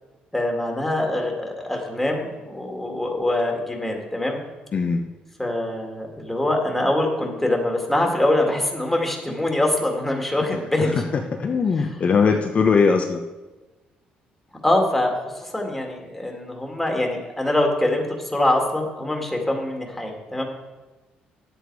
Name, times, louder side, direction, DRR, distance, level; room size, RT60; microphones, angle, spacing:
voice 1, 0.3-4.4 5.4-11.0 11.7-12.0 14.6-18.0 18.3-20.4, left 1 dB, 5° left, 1 dB, 2.2 m, -24 dB
voice 2, 4.7-5.0 10.5-10.9 11.4-13.2, left 5 dB, 45° left, 3 dB, 0.8 m, -20 dB
10.0 x 8.2 x 4.7 m, 1.2 s
cardioid pair, 90°, 3 cm